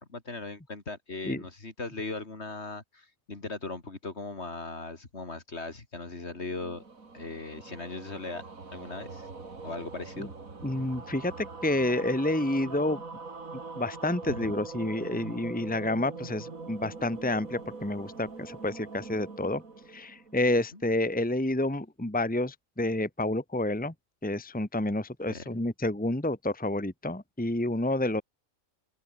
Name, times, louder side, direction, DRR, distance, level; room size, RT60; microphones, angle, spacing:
voice 1, 0.0-6.8 7.1-8.4 8.7-9.3 9.6-10.3 14.3-14.5 20.7-20.8 25.3-25.4, left 3 dB, 55° left, 3.2 m, -38 dB
sound 1, 6.3-20.8, right 4 dB, 85° right, 3.4 m, -43 dB
voice 2, 10.6-13.0 13.8-19.6 19.9-23.9 24.2-28.2, left 1 dB, 5° left, 1.6 m, -29 dB
omnidirectional pair, 1.4 m